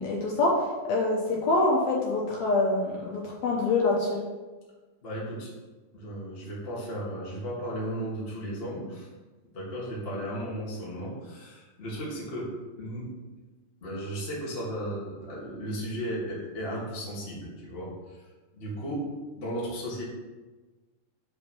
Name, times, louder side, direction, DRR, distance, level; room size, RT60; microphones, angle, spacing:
voice 1, 0.0-4.2, left 2 dB, 70° left, -3 dB, 1.7 m, -25 dB
voice 2, 5.0-5.5 5.9-9.1 9.5-12.5 12.8-13.1 13.8-17.9 18.5-19.1 19.4-20.0, equal, 40° left, -6 dB, 0.8 m, -35 dB
5.3 x 4.5 x 6.2 m, 1.2 s
omnidirectional pair, 4.2 m